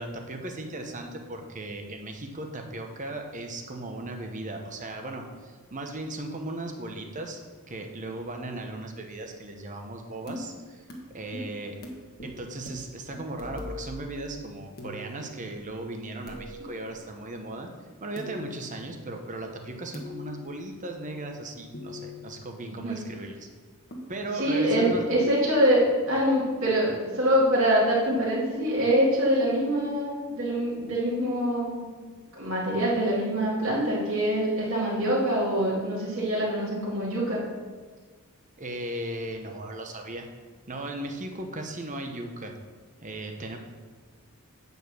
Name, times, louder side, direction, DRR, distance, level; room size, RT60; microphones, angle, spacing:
voice 1, 0.0-7.4 7.7-10.8 11.1-11.8 12.2-17.7 18.0-23.5 24.1-25.1 38.6-40.3 40.7-42.5 43.0-43.6, right 2 dB, 35° right, 4 dB, 1.1 m, -37 dB
sound 1, 10.3-10.5 10.9-11.0 11.3-11.9 12.2-12.4 12.6-12.7 13.1-13.8 14.8-15.7 16.3-17.3 18.2-18.9 19.9-20.8 21.7-22.6 23.9-24.0, left 2 dB, 45° left, 1.5 m, -41 dB
voice 2, 24.3-31.8 32.4-37.4, equal, 65° right, -7 dB, 2.6 m, -24 dB
8.8 x 5.4 x 6.3 m, 1.5 s
head